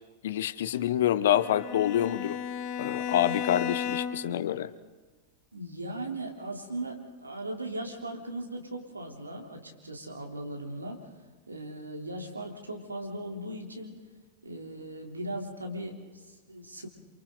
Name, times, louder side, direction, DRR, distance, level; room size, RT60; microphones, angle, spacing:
voice 1, 0.2-2.4 2.8-4.7, left 11 dB, 60° left, 16 dB, 1.0 m, -27 dB
Bowed string instrument, 1.3-4.4, left 8 dB, 40° left, 1.7 m, -34 dB
voice 2, 5.5-11.0 11.5-14.0 14.4-16.9, right 1 dB, 80° right, 2 dB, 3.6 m, -38 dB
29.0 x 27.5 x 4.0 m, 1.3 s
figure-of-eight pair, 90°, 0 cm